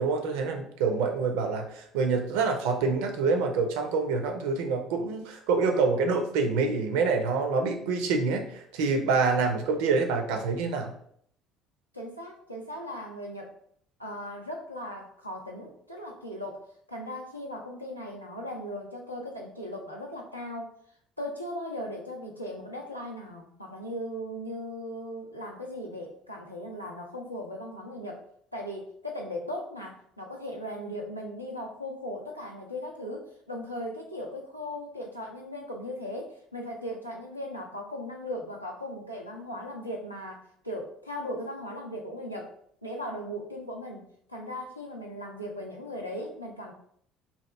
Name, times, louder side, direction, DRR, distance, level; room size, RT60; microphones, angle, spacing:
voice 1, 0.0-10.9, right 4 dB, 65° right, 4 dB, 0.4 m, -26 dB
voice 2, 11.9-13.5 14.0-20.7 21.2-28.2 28.5-42.5 42.8-44.0 44.3-46.7, equal, 90° left, -1 dB, 0.4 m, -38 dB
2.8 x 2.3 x 3.2 m, 0.66 s
figure-of-eight pair, 55°, 0 cm